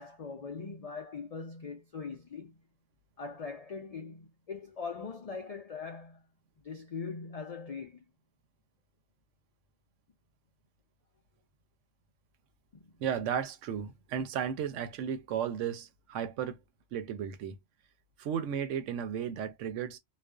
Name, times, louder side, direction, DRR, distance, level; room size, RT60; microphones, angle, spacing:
voice 1, 0.0-2.6 3.2-6.2 6.6-8.0 12.7-12.9, left 5 dB, 75° left, 0.3 m, -41 dB
voice 2, 13.0-16.6 16.9-17.6 18.2-20.0, right 8 dB, 85° right, 0.9 m, -34 dB
2.4 x 2.2 x 2.2 m
omnidirectional pair, 1.2 m